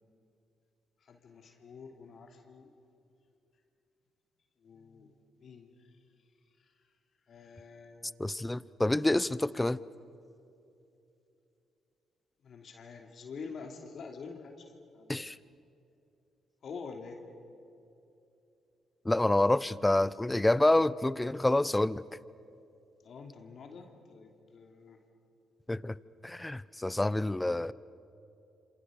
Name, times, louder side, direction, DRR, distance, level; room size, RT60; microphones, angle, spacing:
voice 1, 1.0-2.7 4.6-5.1 5.4-5.9 6.6-6.7 7.3-8.3 12.4-15.1 16.6-17.2 23.0-25.0, left 5 dB, 60° left, 3 dB, 3.0 m, -47 dB
voice 2, 8.2-9.8 15.1-15.4 19.0-22.0 25.7-26.0 26.2-27.7, left 1 dB, 15° left, 19 dB, 0.8 m, -27 dB
27.5 x 27.0 x 6.6 m, 2.8 s
hypercardioid pair, 50°, 0 cm